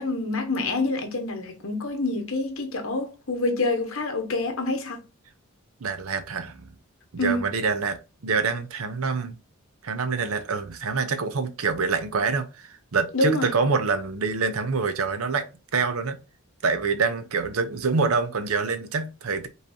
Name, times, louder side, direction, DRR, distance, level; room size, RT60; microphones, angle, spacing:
voice 1, 0.0-5.0 7.2-7.5 13.1-13.5, left 2 dB, 65° left, 1.2 m, -27 dB
voice 2, 5.8-6.6 7.1-8.0 8.2-9.4 9.8-16.2 16.6-19.5, right 4 dB, 75° right, 0.6 m, -26 dB
5.3 x 3.2 x 2.6 m
head